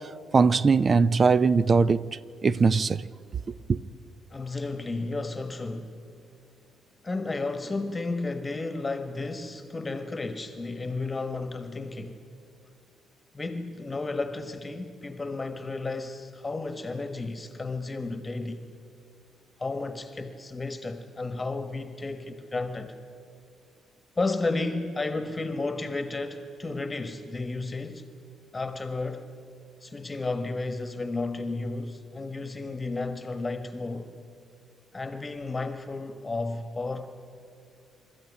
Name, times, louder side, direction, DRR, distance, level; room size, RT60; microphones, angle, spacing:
voice 1, 0.3-2.0 2.4-3.0 3.7-3.8, right 4 dB, 40° right, 0.6 m, -20 dB
voice 2, 4.3-6.0 7.0-12.2 13.3-18.6 19.6-23.0 24.2-28.1 28.5-29.3 29.8-34.1 34.9-37.1, left 3 dB, 20° left, 1.4 m, -32 dB
27.5 x 13.5 x 9.8 m
cardioid pair, 90°, 0 cm